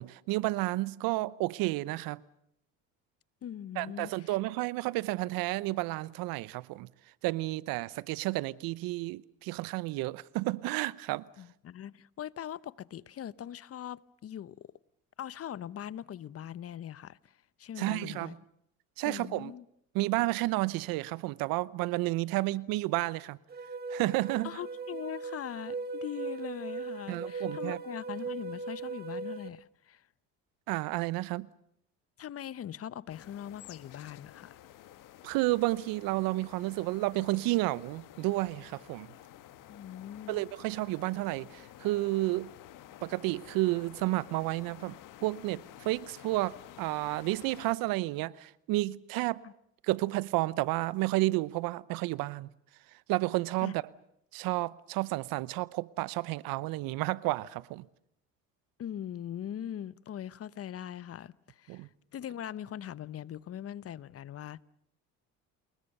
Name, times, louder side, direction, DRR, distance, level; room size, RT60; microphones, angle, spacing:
voice 1, 0.0-2.2 3.8-6.9 7.2-11.2 17.8-18.4 19.0-19.5 19.9-23.4 23.9-24.5 27.1-27.8 30.7-31.5 35.2-39.1 40.3-42.5 43.0-49.4 49.8-52.5 53.1-53.8 54.3-57.8 61.7-61.9, right 19 dB, 80° right, 0.9 m, -31 dB
voice 2, 3.4-4.4 11.4-14.7 15.2-17.3 17.6-18.4 19.0-19.6 24.4-30.1 32.2-34.6 39.7-40.4 49.4-49.5 53.6-53.7 58.8-64.6, left 10 dB, 45° left, 0.9 m, -41 dB
sound 1, 23.5-29.5, right 4 dB, 25° right, 1.8 m, -39 dB
sound 2, 33.1-47.8, left 13 dB, 65° left, 1.7 m, -52 dB
28.5 x 21.5 x 6.7 m
supercardioid pair, 95°, 34 cm